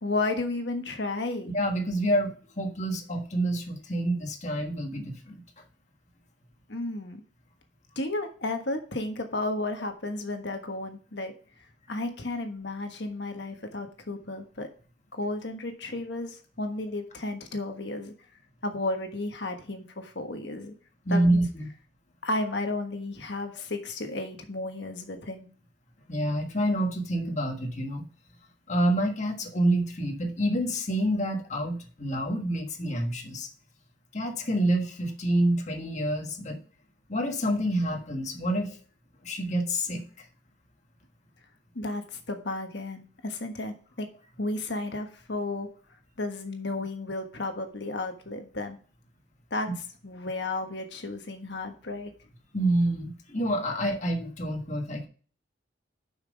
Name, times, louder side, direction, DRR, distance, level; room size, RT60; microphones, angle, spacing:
voice 1, 0.0-1.5 6.7-7.2 7.9-11.3 11.9-14.7 15.1-18.1 18.6-20.7 21.1-21.4 22.2-25.5 41.7-44.1 44.4-45.7 46.2-48.8 49.5-49.7 50.0-52.1, left 2 dB, 60° left, 5 dB, 1.4 m, -33 dB
voice 2, 1.5-5.4 21.0-21.7 26.1-28.0 28.7-33.5 34.1-36.6 37.1-38.8 39.2-40.0 52.5-55.1, right 1 dB, 40° left, 2 dB, 1.6 m, -27 dB
7.3 x 5.9 x 5.1 m, 0.40 s
head